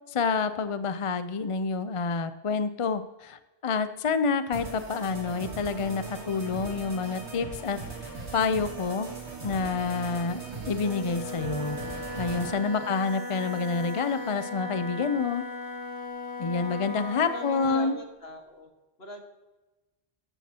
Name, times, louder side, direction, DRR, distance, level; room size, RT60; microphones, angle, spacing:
voice 1, 0.1-7.8 8.3-9.1 9.4-10.4 10.7-15.4 16.4-17.9, left 4 dB, 40° left, 11 dB, 0.5 m, -28 dB
sound 1, 4.5-12.5, right 4 dB, 80° right, 3.0 m, -39 dB
sound 2, 8.1-14.5, equal, 10° right, 3.7 m, -58 dB
Wind instrument woodwind instrument, 10.7-18.0, left 3 dB, 45° right, 3.1 m, -37 dB
voice 2, 17.3-18.7 19.0-19.2, left 2 dB, 65° left, 3 dB, 2.1 m, -42 dB
13.5 x 13.5 x 2.9 m, 1.1 s
omnidirectional pair, 1.1 m